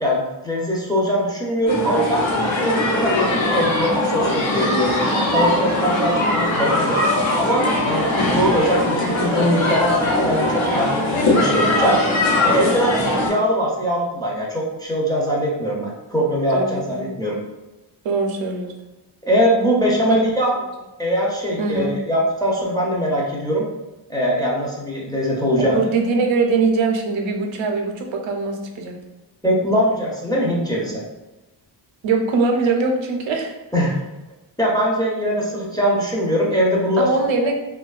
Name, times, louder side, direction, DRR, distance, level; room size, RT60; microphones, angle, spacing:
voice 1, 0.0-5.0 5.3-7.0 7.3-12.0 12.4-17.4 19.2-20.5 21.0-23.6 24.1-25.9 29.4-31.0 33.7-33.9 34.6-37.1, equal, 10° left, -4 dB, 0.4 m, -21 dB
sound 1, 1.7-13.3, left 1 dB, 75° left, 0.9 m, -20 dB
voice 2, 16.5-17.0 18.0-18.7 21.6-21.9 25.6-28.9 32.0-33.5 37.0-37.6, right 4 dB, 70° right, 3 dB, 0.5 m, -22 dB
2.6 x 2.2 x 2.3 m, 1.0 s
cardioid pair, 95°, 47 cm